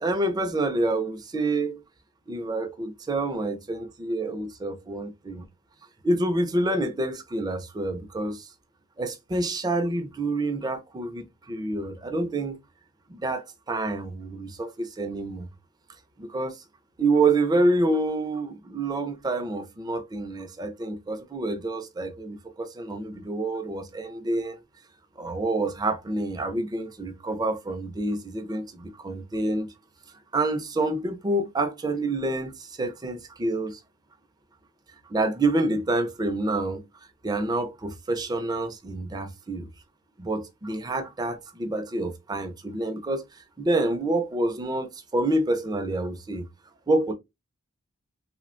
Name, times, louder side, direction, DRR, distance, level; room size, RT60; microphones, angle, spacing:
voice 1, 0.0-1.8 2.3-5.4 6.0-8.5 9.0-12.6 13.1-15.5 16.2-16.6 17.0-24.6 25.2-29.7 30.3-33.8 35.1-36.8 37.2-39.7 40.2-46.5 46.9-47.1, right 2 dB, 20° right, 0.4 m, -27 dB
3.2 x 2.1 x 2.4 m
head